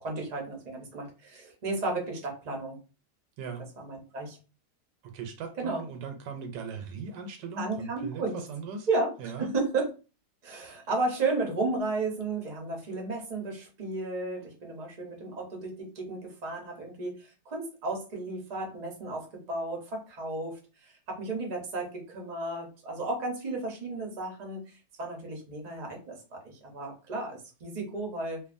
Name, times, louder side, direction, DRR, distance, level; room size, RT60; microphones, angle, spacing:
voice 1, 0.0-2.8 3.8-4.4 5.6-5.8 7.6-8.4 8.9-9.9 10.4-28.4, right 3 dB, 40° right, 0 dB, 0.6 m, -33 dB
voice 2, 3.4-3.7 5.0-8.9 9.2-9.5, right 5 dB, 85° right, 5 dB, 1.2 m, -39 dB
2.6 x 2.5 x 2.5 m, 0.33 s
omnidirectional pair, 1.8 m